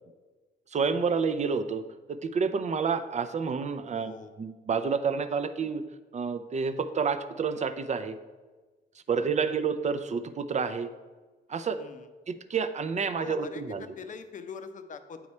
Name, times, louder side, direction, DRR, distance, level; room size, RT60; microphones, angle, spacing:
voice 1, 0.7-1.8 2.1-4.1 4.4-5.8 6.1-8.2 9.1-10.9 11.5-11.8 12.3-13.8, right 5 dB, 35° right, 11 dB, 0.5 m, -29 dB
voice 2, 4.0-4.3 9.2-9.6 11.8-12.1 13.2-15.2, left 5 dB, 40° left, 9 dB, 0.6 m, -43 dB
8.6 x 4.7 x 4.2 m, 1.3 s
cardioid pair, 90°, 20 cm